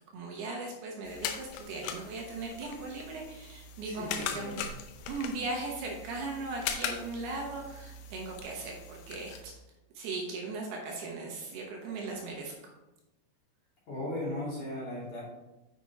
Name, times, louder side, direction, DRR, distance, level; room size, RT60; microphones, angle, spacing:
voice 1, 0.1-4.6 5.1-9.5 9.9-12.7, right 3 dB, 70° right, 0 dB, 2.5 m, -38 dB
sound 1, 1.0-9.4, left 7 dB, 80° left, 3.1 m, -40 dB
voice 2, 3.8-4.7 13.9-15.2, left 1 dB, 40° left, -8 dB, 3.2 m, -37 dB
7.8 x 6.1 x 4.2 m, 1.0 s
omnidirectional pair, 5.8 m